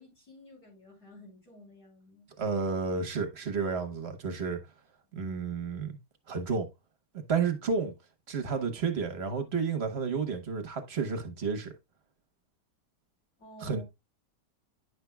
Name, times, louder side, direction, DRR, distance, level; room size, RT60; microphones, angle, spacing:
voice 1, 0.0-2.3 13.4-13.8, equal, 65° left, 4.4 m, -52 dB
voice 2, 2.4-4.6 5.1-6.0 6.3-6.7 7.1-7.9 8.3-11.7 13.6-13.8, right 5 dB, 40° right, 1.2 m, -31 dB
9.6 x 5.9 x 2.2 m
omnidirectional pair, 1.9 m